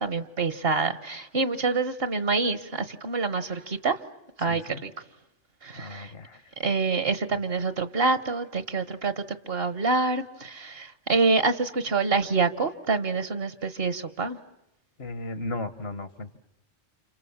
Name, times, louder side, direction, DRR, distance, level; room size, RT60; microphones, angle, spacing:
voice 1, 0.0-4.0 4.4-4.9 5.6-6.1 6.6-14.4, right 4 dB, 55° right, 12 dB, 1.4 m, -26 dB
voice 2, 4.5-4.8 5.7-6.5 15.0-16.4, left 2 dB, 60° left, 12 dB, 1.5 m, -36 dB
29.5 x 27.5 x 7.2 m, 0.86 s
omnidirectional pair, 1.2 m